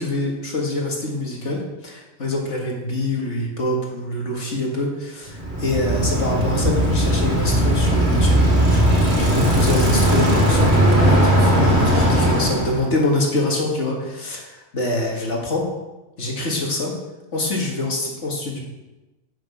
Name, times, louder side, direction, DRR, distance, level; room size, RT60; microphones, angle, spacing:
voice 1, 0.0-8.5 8.7-8.8 9.2-15.7 16.2-16.9 17.3-18.6, left 1 dB, 90° left, -1 dB, 2.2 m, -25 dB
Bicycle, 5.3-12.8, equal, 65° right, 2.5 m, -18 dB
7.7 x 6.9 x 5.7 m, 1.1 s
omnidirectional pair, 1.2 m